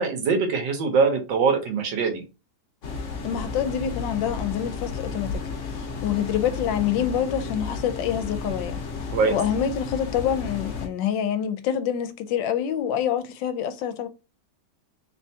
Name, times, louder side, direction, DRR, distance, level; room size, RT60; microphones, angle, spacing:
voice 1, 0.0-2.2 9.1-9.4, right 5 dB, 80° right, 1.7 m, -22 dB
sound 1, 2.8-10.9, left 4 dB, 50° left, 1.0 m, -33 dB
voice 2, 3.2-5.4 5.7-8.8 9.3-14.1, left 9 dB, 85° left, 1.3 m, -26 dB
3.7 x 3.3 x 2.8 m
omnidirectional pair, 2.0 m